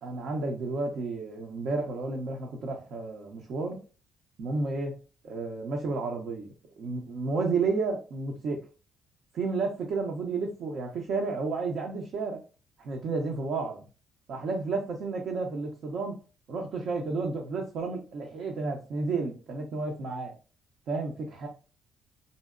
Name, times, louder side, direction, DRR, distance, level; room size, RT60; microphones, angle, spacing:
voice 1, 0.0-3.8 4.4-5.0 5.2-8.6 9.3-12.4 12.8-13.8 14.3-16.2 16.5-20.3 20.9-21.5, right 3 dB, 70° right, 0.7 m, -31 dB
3.9 x 2.1 x 2.4 m
cardioid pair, 90°, 0 cm